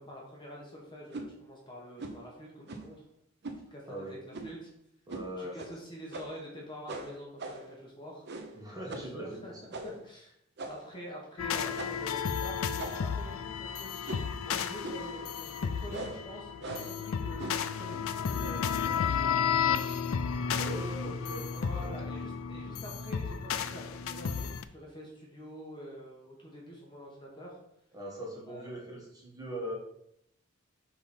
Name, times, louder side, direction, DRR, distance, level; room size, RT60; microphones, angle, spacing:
voice 1, 0.0-3.0 3.7-4.7 5.4-8.3 8.7-10.3 10.6-13.9 14.4-19.6 21.5-27.6 28.5-28.7, equal, 20° left, -2 dB, 1.3 m, -46 dB
sound 1, 1.1-1.3 2.0-2.2 2.7-3.0 3.4-3.6 4.3-4.6 5.1-5.3 5.6-5.7 6.1-6.5 6.9-7.7 8.2-8.6 8.9-9.1 9.7-10.0 10.6-11.0 11.7-12.1 12.8-13.2 14.0-14.4 14.8-15.1 15.9-16.2 16.6-17.0 17.4-17.7, right 2 dB, 55° right, 0.7 m, -41 dB
voice 2, 5.1-5.6 8.5-9.9 20.6-21.5 27.9-29.7, right 1 dB, 20° right, -3 dB, 1.6 m, -40 dB
sound 2, 11.4-24.6, left 7 dB, 75° left, 0.4 m, -33 dB
5.4 x 5.0 x 4.3 m, 0.77 s
head